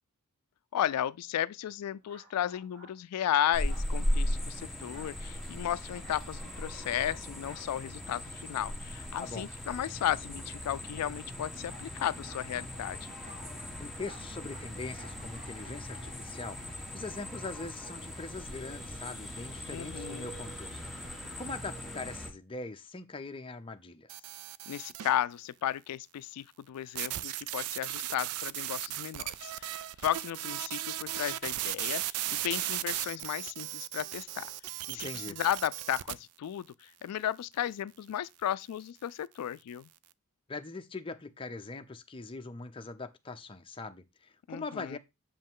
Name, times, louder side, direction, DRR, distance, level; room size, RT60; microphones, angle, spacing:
voice 1, 0.7-13.1 19.7-20.3 24.7-32.0 32.4-34.5 34.9-39.9 44.5-45.0, left 10 dB, 90° left, 0.3 m, -34 dB
sound 1, 2.0-3.0 3.7-4.0 4.9-5.2 6.0-6.3 7.4-7.7 9.4-9.6 11.7-17.9, equal, 40° right, 4.2 m, -54 dB
sound 2, 3.5-22.3, left 1 dB, ahead, 1.3 m, -38 dB
voice 2, 9.2-9.5 13.8-24.2 34.9-35.4 40.5-45.0, left 3 dB, 25° left, 0.7 m, -42 dB
sound 3, 24.1-25.2 27.0-36.1, right 14 dB, 70° right, 0.4 m, -36 dB
7.0 x 5.4 x 3.6 m
head